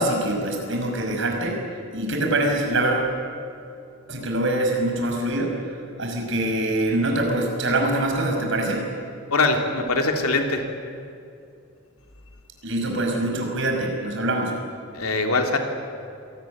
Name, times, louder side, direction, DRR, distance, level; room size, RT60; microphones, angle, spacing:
voice 1, 0.0-1.6 1.9-3.1 4.1-5.6 6.0-8.9 12.6-14.5, right 1 dB, 60° right, 1 dB, 5.8 m, -24 dB
voice 2, 9.3-10.6 14.9-15.6, left 3 dB, 80° left, 4 dB, 3.2 m, -22 dB
26.5 x 19.5 x 9.6 m, 2.5 s
head